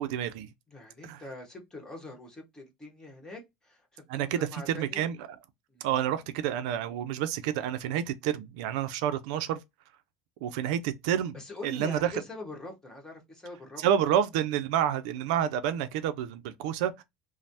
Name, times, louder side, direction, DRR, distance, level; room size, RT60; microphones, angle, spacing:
voice 1, 0.0-0.5 1.0-1.2 4.1-5.3 5.8-9.6 10.4-11.4 11.6-12.1 13.8-17.0, right 10 dB, 90° right, 0.3 m, -29 dB
voice 2, 0.7-5.0 5.7-5.9 11.3-14.1, left 2 dB, 15° left, 1.2 m, -44 dB
3.1 x 2.0 x 2.7 m
supercardioid pair, 110°, 4 cm